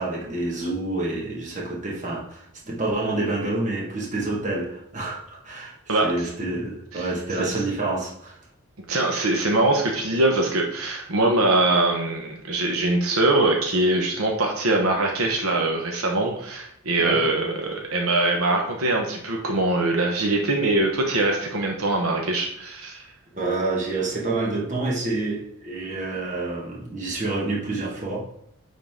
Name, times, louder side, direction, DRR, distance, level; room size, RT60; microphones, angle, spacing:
voice 1, 0.0-8.4 17.0-17.3 23.3-28.2, right 2 dB, 35° right, 1.6 m, -28 dB
voice 2, 8.9-23.1, right 2 dB, 70° right, 1.0 m, -22 dB
9.2 x 3.7 x 3.7 m
head